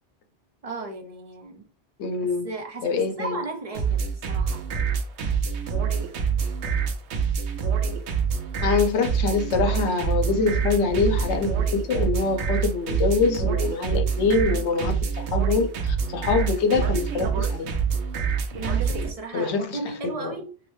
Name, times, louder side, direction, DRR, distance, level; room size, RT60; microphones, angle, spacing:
voice 1, 0.6-1.7 2.4-4.7 18.5-20.5, right 3 dB, 55° right, 0.4 m, -35 dB
voice 2, 2.0-2.5 2.8-3.4 8.6-17.7 19.3-19.8 20.0-20.3, left 4 dB, 75° left, 0.9 m, -24 dB
sound 1, 3.7-19.1, right 6 dB, 75° right, 0.9 m, -26 dB
3.0 x 2.7 x 3.0 m
omnidirectional pair, 1.2 m